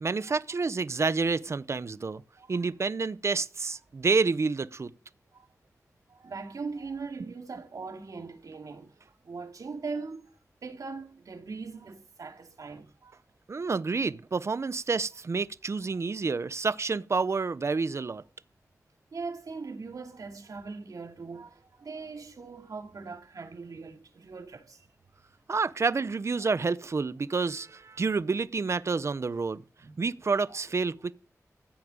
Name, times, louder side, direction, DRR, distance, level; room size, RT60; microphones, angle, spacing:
voice 1, 0.0-2.2 2.5-4.9 13.5-18.2 25.5-29.6 30.0-31.1, right 4 dB, 50° right, 0.8 m, -29 dB
voice 2, 2.4-2.7 5.3-5.5 6.1-13.2 19.1-24.8 27.2-27.3 29.8-30.0 30.5-30.6, right 4 dB, 85° right, 2.6 m, -40 dB
15.0 x 7.3 x 8.9 m
wide cardioid pair, 105°, 6 cm